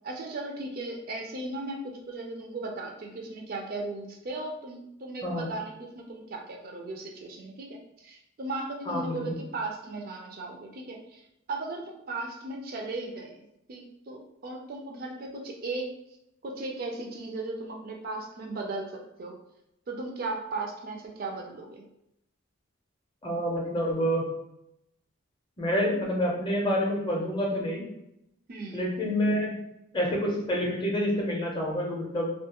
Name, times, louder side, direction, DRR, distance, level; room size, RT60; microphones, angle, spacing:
voice 1, 0.0-13.4 13.7-15.9 16.4-19.4 19.9-21.8 28.5-28.8, right 2 dB, 45° right, 1 dB, 0.3 m, -37 dB
voice 2, 8.9-9.3 23.2-24.3 25.6-27.9 28.7-29.5 29.9-32.3, equal, 20° left, -2 dB, 0.5 m, -28 dB
2.4 x 2.3 x 2.8 m, 0.81 s
head